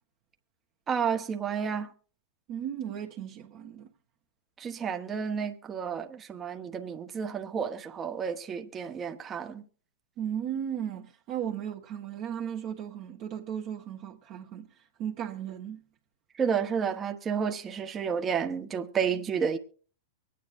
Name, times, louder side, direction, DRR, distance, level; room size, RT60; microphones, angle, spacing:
voice 1, 0.9-1.9 4.6-9.6 16.4-19.6, right 7 dB, 25° right, 1.1 m, -31 dB
voice 2, 2.5-3.9 10.2-14.7 15.0-15.8, right 9 dB, 45° right, 1.3 m, -36 dB
24.0 x 9.4 x 2.6 m
hypercardioid pair, 115°, 0 cm